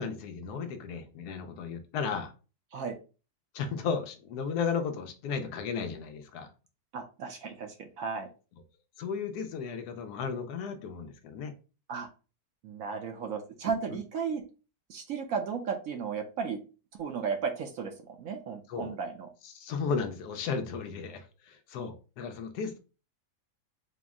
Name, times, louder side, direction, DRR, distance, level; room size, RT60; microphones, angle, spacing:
voice 1, 0.0-2.3 3.5-6.5 9.0-11.5 18.7-18.9 19.4-22.8, left 5 dB, 75° left, 1.1 m, -34 dB
voice 2, 6.9-8.3 11.9-12.1 12.6-14.5 14.9-16.6 16.9-19.3, right 6 dB, 70° right, 0.9 m, -34 dB
4.3 x 2.0 x 3.5 m
omnidirectional pair, 1.7 m